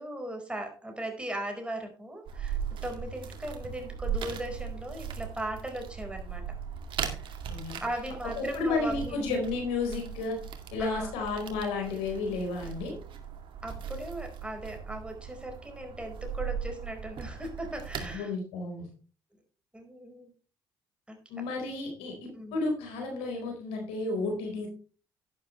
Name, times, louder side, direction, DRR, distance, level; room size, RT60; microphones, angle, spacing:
voice 1, 0.0-6.4 7.2-7.3 7.8-9.2 10.8-11.1 13.6-18.3 19.7-20.3 21.1-21.2 22.3-22.6, right 1 dB, 10° right, 3 dB, 4.7 m, -38 dB
sound 1, 2.3-18.2, right 7 dB, 55° right, 2.2 m, -38 dB
voice 2, 7.5-7.8 8.4-10.4 10.7-12.9 18.0-18.9 21.3-24.7, left 3 dB, 75° left, 3 dB, 4.3 m, -32 dB
11.0 x 10.5 x 3.2 m, 0.39 s
hypercardioid pair, 55°, 10 cm